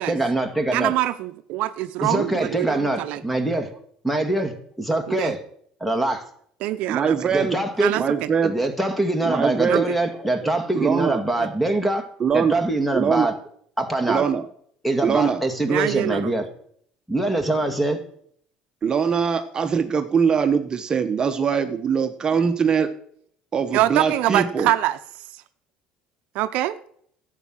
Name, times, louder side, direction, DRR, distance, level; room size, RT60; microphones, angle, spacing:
voice 1, 0.0-0.9 2.0-3.8 4.0-5.4 5.8-6.3 7.3-7.9 8.4-12.1 12.3-13.3 13.8-14.2 14.8-16.5 17.1-18.0, right 2 dB, ahead, 7 dB, 2.0 m, -23 dB
voice 2, 0.7-3.2 5.1-5.3 6.6-7.3 7.8-8.0 9.7-9.8 11.4-11.5 15.7-16.3 23.7-25.0 26.3-26.7, right 15 dB, 70° right, 11 dB, 0.7 m, -24 dB
voice 3, 6.9-7.6 7.9-8.5 9.2-9.9 10.7-11.2 12.2-12.6 12.9-13.3 14.1-14.5 15.0-15.4 18.8-22.9 23.5-24.7, right 6 dB, 30° right, 7 dB, 1.0 m, -22 dB
12.0 x 8.4 x 6.2 m, 0.64 s
supercardioid pair, 100°, 2 cm